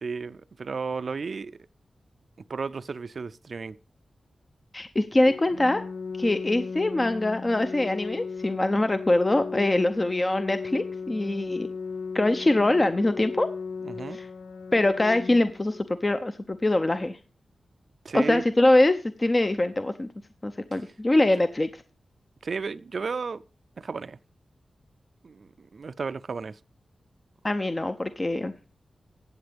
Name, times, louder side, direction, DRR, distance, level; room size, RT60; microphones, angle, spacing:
voice 1, 0.0-1.6 2.5-3.8 13.8-14.2 18.0-18.5 20.7-20.8 22.4-23.4 23.8-24.2 25.2-26.6, right 4 dB, 65° right, 0.4 m, -33 dB
voice 2, 4.7-5.8 6.2-11.7 12.1-13.5 14.1-14.3 14.7-17.2 18.1-20.1 20.4-21.7 27.4-28.5, left 2 dB, 30° left, 0.6 m, -23 dB
Organ, 5.2-16.2, left 5 dB, 90° left, 0.5 m, -37 dB
14.5 x 8.1 x 3.4 m
cardioid pair, 60°, 0 cm